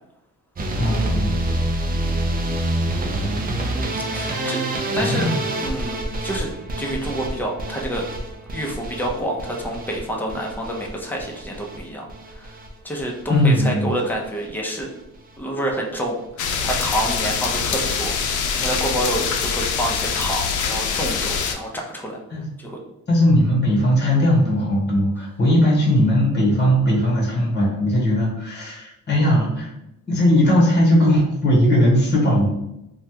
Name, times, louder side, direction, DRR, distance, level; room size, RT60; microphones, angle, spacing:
sound 1, 0.6-12.7 13.0-13.6 13.9-14.5 14.8-15.0 15.4-15.5 15.7-15.8, right 1 dB, 30° right, 0.5 m, -27 dB
voice 1, 0.8-1.3 4.3-4.4 5.0-5.3 13.3-13.9 22.3-22.5 23.1-29.7 30.1-32.5, equal, 35° left, -3 dB, 1.3 m, -18 dB
voice 2, 4.1-4.6 4.9-5.3 5.6-6.5 6.8-8.1 8.5-12.0 12.3-12.6 12.8-14.9 15.4-16.2 16.6-18.1 18.5-22.2 22.6-22.8, right 1 dB, 5° left, -1 dB, 0.7 m, -28 dB
sound 2, 16.4-21.6, left 6 dB, 80° left, 0.5 m, -24 dB
3.1 x 2.3 x 2.8 m, 0.87 s
cardioid pair, 90°, 30 cm